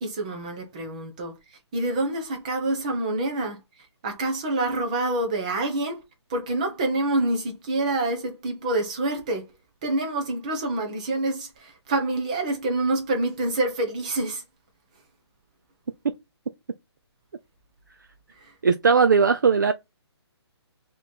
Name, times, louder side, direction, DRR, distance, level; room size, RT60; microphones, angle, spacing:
voice 1, 0.0-1.3 1.7-3.6 4.0-6.0 6.3-9.5 9.8-14.4 18.4-18.5, right 2 dB, 15° right, 0.8 m, -27 dB
voice 2, 18.6-19.7, right 5 dB, 45° right, 0.4 m, -18 dB
4.0 x 3.0 x 4.4 m
hypercardioid pair, 180°, 14 cm